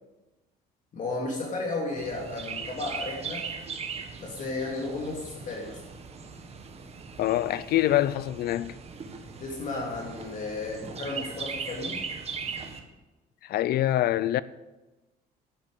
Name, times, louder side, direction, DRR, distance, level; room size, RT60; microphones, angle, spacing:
voice 1, 0.9-3.4 4.2-5.8 9.4-12.0, left 2 dB, 50° left, 2.9 m, -33 dB
Chirp tweet, 2.0-12.8, right 5 dB, 40° right, 1.7 m, -39 dB
voice 2, 7.2-8.7 13.4-14.4, left 13 dB, 65° left, 0.6 m, -25 dB
11.5 x 9.1 x 7.8 m
cardioid pair, 110°, 17 cm